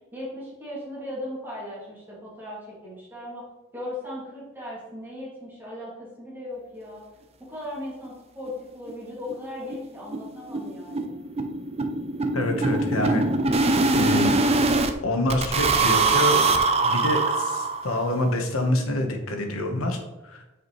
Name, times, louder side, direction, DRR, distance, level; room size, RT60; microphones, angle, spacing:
voice 1, 0.1-3.4 3.7-7.0 7.5-11.2, left 1 dB, 10° right, -7 dB, 2.2 m, -37 dB
sound 1, 8.1-8.2 8.5-8.6 8.9-9.0 9.3-9.4 9.7-14.9 15.3-18.1, right 3 dB, 30° right, 0.5 m, -23 dB
voice 2, 12.3-13.3 13.9-14.4 15.0-16.5 16.8-20.4, left 1 dB, 90° left, 4 dB, 1.1 m, -26 dB
8.1 x 4.9 x 3.1 m, 1.0 s
head